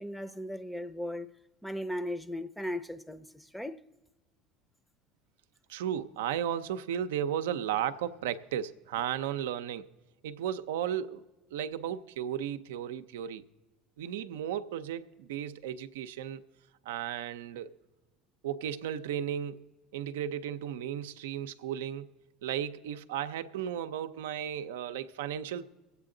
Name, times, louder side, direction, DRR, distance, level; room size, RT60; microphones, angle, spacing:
voice 1, 0.0-1.3 1.6-3.8, left 1 dB, 5° left, 0.6 m, -37 dB
voice 2, 5.7-9.9 10.2-11.2 11.5-13.4 14.0-16.4 16.8-17.7 18.4-22.1 22.4-25.7, right 10 dB, 85° right, 0.5 m, -35 dB
23.5 x 8.2 x 3.8 m
supercardioid pair, 90°, 0 cm